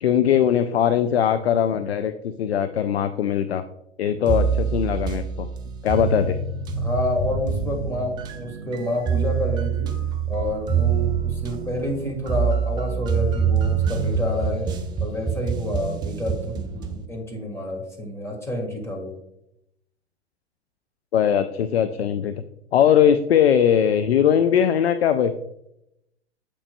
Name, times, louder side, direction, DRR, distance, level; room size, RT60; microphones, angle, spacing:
voice 1, 0.0-3.6 4.0-5.5 5.8-6.4 21.1-22.3 22.7-25.3, left 9 dB, 65° left, 11 dB, 0.5 m, -20 dB
sound 1, 4.3-17.1, right 6 dB, 15° right, 0.4 m, -25 dB
voice 2, 6.8-9.9 10.3-14.7 15.0-19.1, left 1 dB, 10° left, 0 dB, 1.5 m, -29 dB
8.0 x 6.0 x 2.2 m, 0.81 s
figure-of-eight pair, 100°, 33 cm